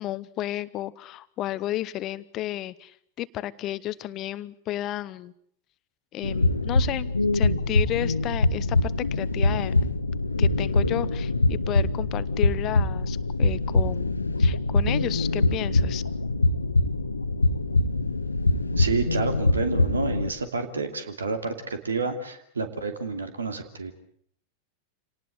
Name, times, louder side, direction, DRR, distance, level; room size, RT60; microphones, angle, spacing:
voice 1, 0.0-5.3 6.1-9.7 10.4-14.1 14.4-16.0, left 14 dB, 35° left, 17 dB, 0.9 m, -32 dB
sound 1, 6.2-20.3, left 2 dB, 80° left, 1.2 m, -24 dB
voice 2, 18.8-23.9, right 4 dB, 75° right, 8 dB, 2.7 m, -29 dB
27.0 x 19.0 x 7.9 m, 0.65 s
figure-of-eight pair, 90°, 0 cm